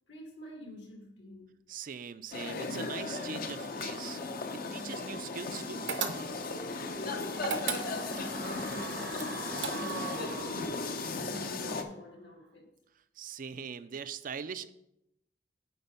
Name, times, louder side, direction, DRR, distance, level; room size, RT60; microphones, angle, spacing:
voice 1, 0.1-1.6 7.2-12.7, left 1 dB, 75° left, 1 dB, 2.1 m, -48 dB
voice 2, 1.7-6.0 13.2-14.7, right 6 dB, 50° right, 13 dB, 0.4 m, -42 dB
sound 1, 2.3-11.8, left 3 dB, 55° left, 0.7 m, -36 dB
sound 2, 5.9-6.6 7.4-8.3 9.2-10.1, right 6 dB, 75° right, 0.8 m, -35 dB
sound 3, 6.4-11.5 11.8-11.9, right 5 dB, 90° right, 1.3 m, -44 dB
9.4 x 4.3 x 5.6 m, 0.81 s
head